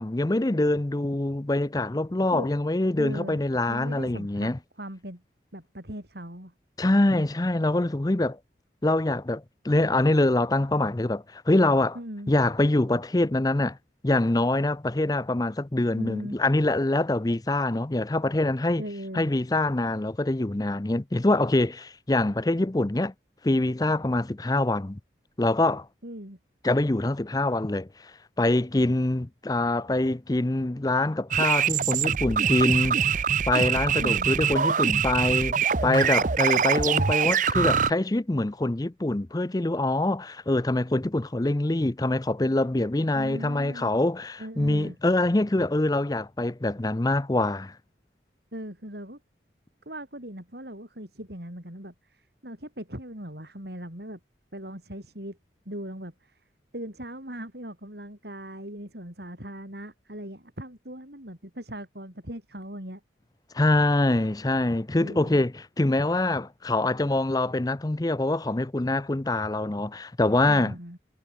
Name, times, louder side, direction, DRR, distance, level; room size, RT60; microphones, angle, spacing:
voice 1, 0.0-4.6 6.8-8.4 8.8-12.0 12.3-13.8 14.0-18.8 19.1-23.1 23.4-25.0 25.4-25.9 26.6-28.1 28.4-47.8 63.5-70.8, left 2 dB, 20° left, 0.6 m, -25 dB
voice 2, 3.0-3.4 3.7-4.5 4.8-5.2 5.5-6.5 12.0-12.3 16.0-16.4 18.8-19.3 26.0-26.4 34.0-34.4 43.1-43.9 44.4-45.0 48.5-49.2 49.9-54.2 54.5-55.4 55.7-56.4 56.7-63.0 65.0-65.5 70.5-71.0, right 1 dB, 60° right, 6.9 m, -39 dB
sound 1, 31.3-37.9, right 7 dB, 45° right, 0.7 m, -24 dB
head